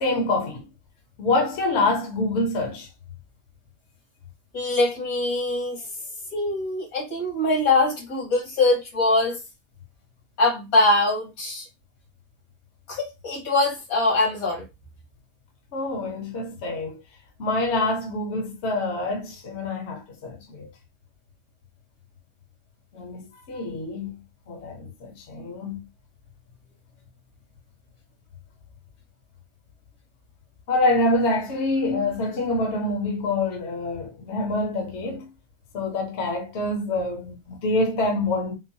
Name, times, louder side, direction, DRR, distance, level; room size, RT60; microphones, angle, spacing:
voice 1, 0.0-0.6 1.2-2.9 15.7-17.0 17.4-20.7 22.9-24.1 24.5-25.8 30.7-35.3 35.7-38.6, left 2 dB, 55° left, 0.9 m, -26 dB
voice 2, 4.5-5.9 6.3-9.4 10.4-11.7 12.9-14.6, left 2 dB, 80° left, 1.8 m, -23 dB
3.7 x 2.0 x 2.7 m
omnidirectional pair, 1.5 m